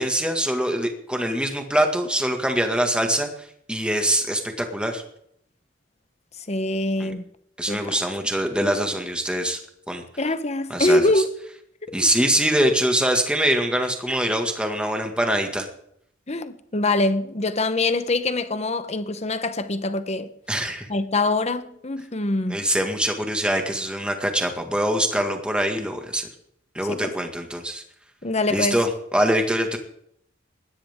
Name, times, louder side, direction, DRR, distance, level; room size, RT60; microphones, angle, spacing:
voice 1, 0.0-3.3 3.7-5.0 7.0-7.1 7.6-9.6 9.9-10.0 10.7-11.2 11.9-15.7 20.5-20.9 22.5-26.3 26.8-27.8 28.5-29.8, right 1 dB, 5° right, 2.0 m, -23 dB
voice 2, 6.5-7.2 7.7-7.9 10.2-11.3 11.8-12.1 16.3-20.3 20.9-22.6 26.9-27.1 28.2-28.8, left 2 dB, 35° left, 1.0 m, -24 dB
20.5 x 17.0 x 3.7 m
head